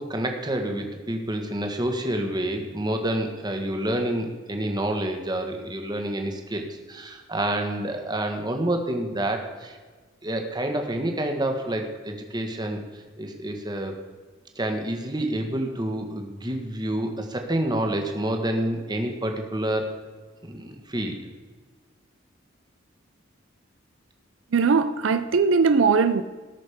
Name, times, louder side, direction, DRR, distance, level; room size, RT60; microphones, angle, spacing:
voice 1, 0.0-9.8 10.2-12.8 13.2-14.0 14.5-20.0 20.4-21.3, right 1 dB, 20° right, 1.5 m, -28 dB
voice 2, 24.5-26.2, right 5 dB, 75° right, 0.5 m, -20 dB
18.5 x 6.4 x 5.1 m
head